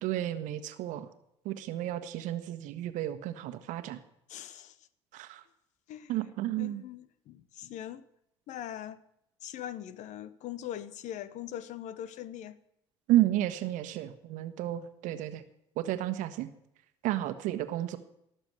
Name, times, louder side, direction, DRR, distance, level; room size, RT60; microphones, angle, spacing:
voice 1, 0.0-1.1 1.4-4.0 5.1-5.4 6.1-6.8 13.1-15.4 15.8-16.5 17.0-18.0, right 14 dB, 60° right, 1.3 m, -31 dB
voice 2, 4.3-4.8 5.9-6.1 6.6-8.0 8.5-9.0 9.4-12.6, left 11 dB, 55° left, 1.0 m, -41 dB
18.0 x 7.0 x 8.2 m
hypercardioid pair, 60°, 14 cm